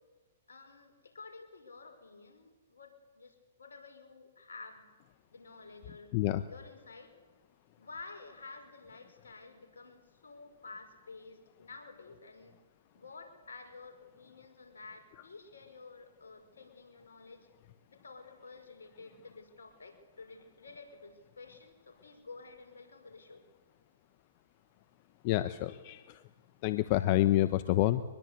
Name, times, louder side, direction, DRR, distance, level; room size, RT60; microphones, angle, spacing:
voice 1, 0.5-4.9 5.3-6.1 6.5-7.1 7.8-12.5 12.9-17.5 17.9-23.4, left 3 dB, 85° left, 5 dB, 5.3 m, -51 dB
voice 2, 6.1-6.4 25.2-26.2 26.6-28.0, left 15 dB, 45° left, 13 dB, 1.0 m, -28 dB
24.0 x 21.5 x 8.3 m, 1.3 s
hypercardioid pair, 125°, 0 cm